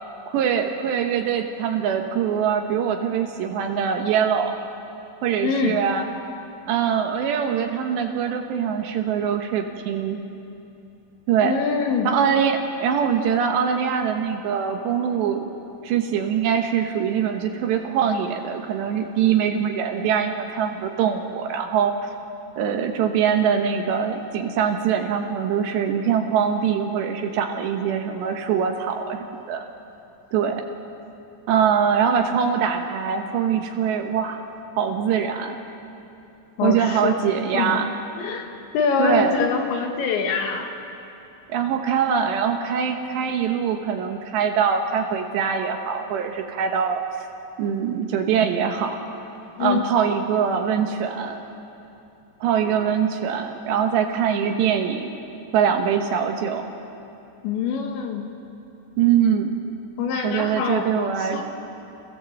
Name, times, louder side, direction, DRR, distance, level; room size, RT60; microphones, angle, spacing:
voice 1, 0.3-4.6 5.2-6.1 6.7-10.2 11.3-11.5 12.0-15.5 15.8-22.0 22.6-29.7 30.3-30.6 31.5-34.5 34.8-35.6 36.6-37.9 39.0-39.3 41.5-47.3 47.6-49.0 49.6-51.4 52.4-55.1 55.5-56.6 59.0-59.5 60.2-61.4, right 7 dB, 70° right, 4 dB, 3.0 m, -23 dB
voice 2, 5.4-5.8 11.4-12.2 36.6-37.2 37.5-37.8 38.1-38.5 38.7-40.7 49.6-49.8 57.4-58.3 60.0-61.4, left 5 dB, 70° left, 3 dB, 3.6 m, -24 dB
29.0 x 16.5 x 7.7 m, 2.8 s
omnidirectional pair, 5.7 m